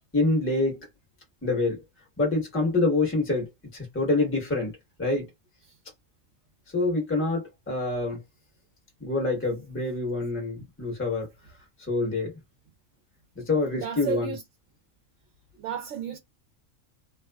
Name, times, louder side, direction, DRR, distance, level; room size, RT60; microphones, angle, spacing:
voice 1, 0.1-0.8 1.4-1.8 2.2-4.7 5.0-5.3 6.7-8.2 9.0-11.3 11.9-12.3 13.4-14.3, left 2 dB, 10° left, 1.0 m, -26 dB
voice 2, 13.6-14.4 15.6-16.2, right 9 dB, 70° right, 0.9 m, -33 dB
2.5 x 2.2 x 2.2 m
omnidirectional pair, 1.4 m